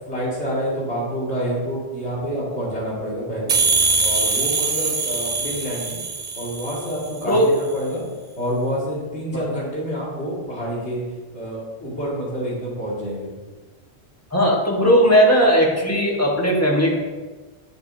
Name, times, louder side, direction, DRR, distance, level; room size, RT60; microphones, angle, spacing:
voice 1, 0.1-3.5 4.0-6.0 6.4-8.0 8.4-11.0 11.3-13.3, equal, 85° left, -6 dB, 2.7 m, -27 dB
sound 1, 3.5-7.1, right 3 dB, 50° right, 0.9 m, -22 dB
voice 2, 14.3-16.9, equal, 15° left, -2 dB, 1.3 m, -17 dB
10.5 x 6.9 x 2.8 m, 1.3 s
omnidirectional pair, 1.1 m